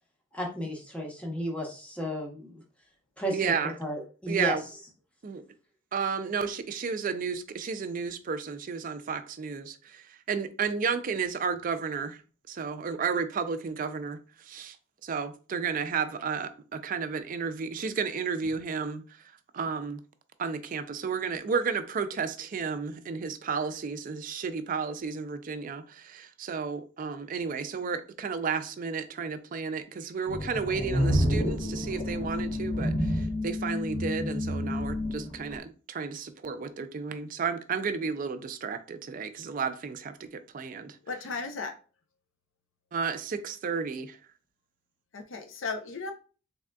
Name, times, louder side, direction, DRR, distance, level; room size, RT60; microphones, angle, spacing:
voice 1, 0.3-2.5 3.2-3.4 3.8-4.6, equal, 5° left, 0.8 m, -33 dB
voice 2, 3.3-3.7 4.3-4.6 5.2-5.4 5.9-12.2 12.5-14.8 15.0-19.2 19.5-20.0 20.4-40.3 40.5-41.0 42.9-44.2, right 5 dB, 45° right, 0.4 m, -32 dB
sound 1, 30.3-35.6, left 1 dB, 45° left, 0.8 m, -29 dB
voice 3, 41.1-41.7 45.1-46.1, left 4 dB, 90° left, 0.6 m, -35 dB
3.6 x 3.4 x 2.2 m
head